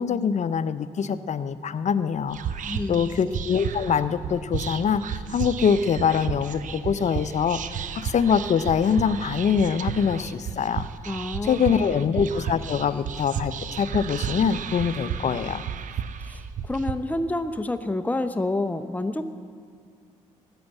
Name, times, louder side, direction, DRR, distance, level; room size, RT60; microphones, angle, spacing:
voice 1, 0.0-2.4 2.9-10.8 11.4-15.6, left 7 dB, 45° left, 14 dB, 0.7 m, -24 dB
Whispering, 2.3-16.9, right 8 dB, 55° right, 0.7 m, -33 dB
voice 2, 2.7-3.1 11.1-12.0 16.2-19.4, left 2 dB, 10° left, 9 dB, 0.8 m, -29 dB
14.0 x 9.9 x 8.1 m, 2.2 s
hypercardioid pair, 45°, 16 cm